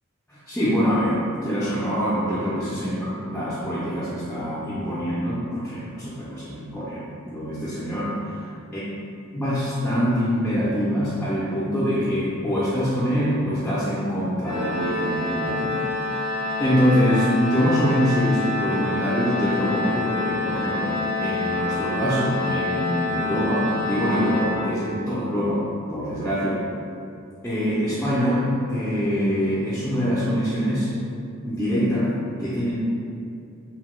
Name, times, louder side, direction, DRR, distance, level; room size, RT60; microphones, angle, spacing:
voice 1, 0.3-8.4 8.7-8.8 9.3-26.6 27.4-30.9 31.4-32.1 32.4-32.7, equal, 5° left, -9 dB, 0.3 m, -24 dB
Organ, 14.4-25.2, left 2 dB, 80° left, 0.4 m, -27 dB
2.8 x 2.1 x 3.0 m, 2.5 s
head